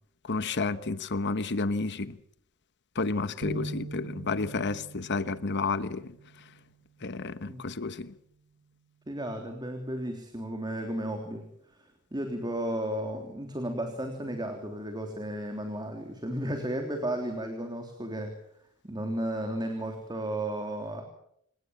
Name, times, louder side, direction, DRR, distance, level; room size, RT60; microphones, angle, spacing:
voice 1, 0.2-2.2 2.9-6.1 7.0-8.1, left 3 dB, 50° left, 1.1 m, -31 dB
sound 1, 3.4-6.9, right 1 dB, 55° right, 4.3 m, -41 dB
voice 2, 9.1-11.5 12.1-18.4 18.8-21.0, right 1 dB, 20° right, 3.4 m, -33 dB
29.0 x 17.5 x 7.5 m
head